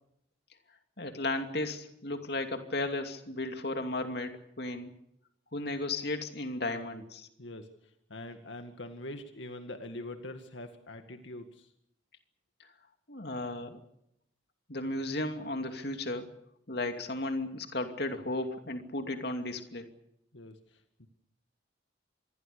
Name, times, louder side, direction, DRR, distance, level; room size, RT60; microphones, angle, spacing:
voice 1, 1.0-4.9 5.5-7.3 13.1-13.8 14.7-16.3 16.7-19.9, left 2 dB, 55° left, 6 dB, 2.6 m, -34 dB
voice 2, 7.4-7.7 8.1-11.7 20.3-21.1, left 1 dB, 75° left, 6 dB, 2.1 m, -44 dB
27.0 x 22.0 x 6.9 m, 0.76 s
head